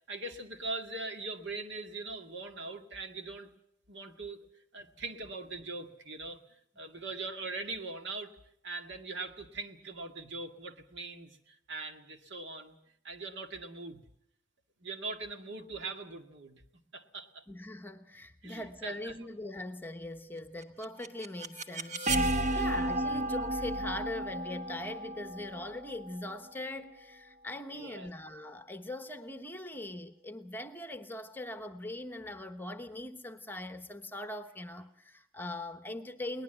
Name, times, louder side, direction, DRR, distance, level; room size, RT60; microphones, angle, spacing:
voice 1, 0.1-3.5 3.9-4.5 4.7-6.4 6.8-8.3 8.6-12.8 13.0-14.0 14.8-16.6 16.9-17.4 18.4-19.1 22.5-22.7 27.7-28.1, right 3 dB, 60° right, 2.0 m, -41 dB
voice 2, 17.5-22.1 22.5-36.4, left 1 dB, 10° left, 1.0 m, -41 dB
sound 1, 20.6-26.5, right 1 dB, 35° right, 1.2 m, -33 dB
22.0 x 19.5 x 8.0 m
head